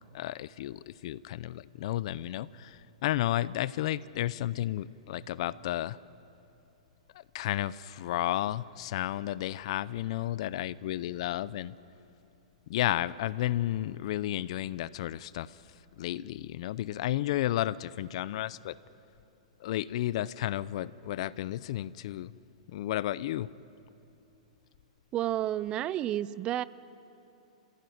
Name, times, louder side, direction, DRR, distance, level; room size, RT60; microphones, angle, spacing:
voice 1, 0.1-6.0 7.1-11.7 12.7-15.6 16.0-18.8 19.6-22.3 22.7-23.5, left 14 dB, 55° left, 19 dB, 0.6 m, -32 dB
voice 2, 25.1-26.6, right 12 dB, 25° right, 18 dB, 0.5 m, -30 dB
28.5 x 16.0 x 9.4 m, 2.8 s
hypercardioid pair, 145°, 4 cm